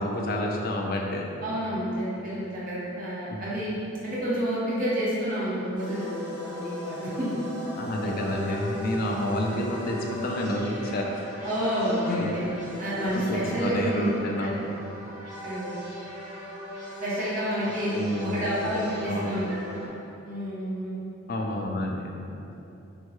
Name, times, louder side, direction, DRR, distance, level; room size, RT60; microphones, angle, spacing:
voice 1, 0.0-1.3 3.3-3.4 7.8-11.2 12.1-12.3 13.1-14.6 17.9-18.4 19.0-19.4 21.3-22.1, left 1 dB, 45° left, 0 dB, 0.3 m, -29 dB
voice 2, 1.4-3.8 4.0-7.3 7.8-8.0 8.4-8.8 11.4-12.5 12.8-14.1 14.4-14.7 15.4-15.7 17.0-17.9 18.2-19.5 19.8-19.9 20.2-20.9 22.4-22.6, equal, 40° right, -8 dB, 0.9 m, -30 dB
sound 1, 5.7-19.9, equal, 20° left, 1.0 m, -38 dB
3.4 x 2.2 x 3.0 m, 2.7 s
head